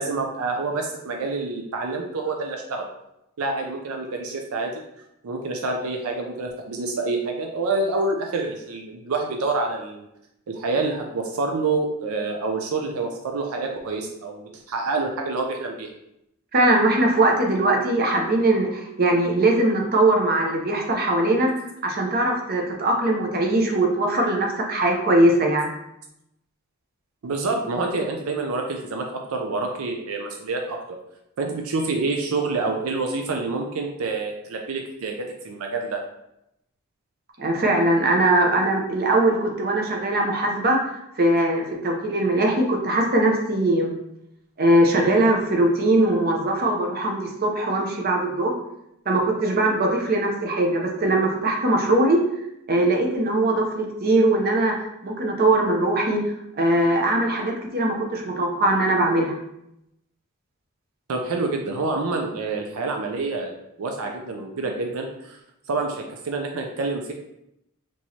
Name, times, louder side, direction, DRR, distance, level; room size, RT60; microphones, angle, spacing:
voice 1, 0.0-2.9 3.4-4.8 5.2-10.1 10.5-15.9 27.2-30.8 31.4-35.1 35.4-36.0 61.1-65.4 65.7-67.1, right 3 dB, 80° right, 2 dB, 0.5 m, -27 dB
voice 2, 16.5-21.6 21.8-25.7 37.4-43.9 44.6-48.5 49.1-52.2 52.7-54.7 55.0-56.2 56.6-59.3, right 1 dB, 45° right, 1 dB, 0.7 m, -21 dB
4.4 x 3.0 x 2.8 m, 0.82 s
head